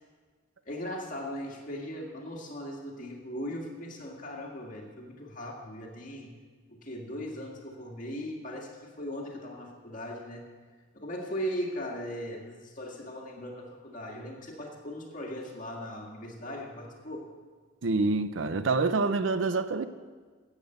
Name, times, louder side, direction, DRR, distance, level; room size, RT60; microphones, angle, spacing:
voice 1, 0.7-6.4 6.7-10.5 10.9-17.3, equal, 40° left, 2.1 m, -38 dB
voice 2, 17.8-19.9, right 3 dB, 70° right, 0.6 m, -26 dB
12.0 x 8.3 x 7.9 m
head